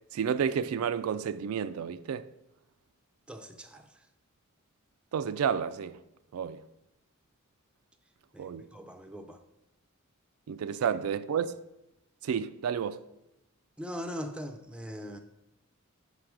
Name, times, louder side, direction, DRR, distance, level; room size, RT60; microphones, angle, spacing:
voice 1, 0.1-2.3 5.1-6.0 6.3-6.6 8.4-8.7 10.5-11.6 12.2-13.0, right 7 dB, 80° right, 0.3 m, -31 dB
voice 2, 3.3-4.0 8.3-9.4 13.8-15.2, equal, 5° right, 0.5 m, -41 dB
5.6 x 5.0 x 6.0 m
head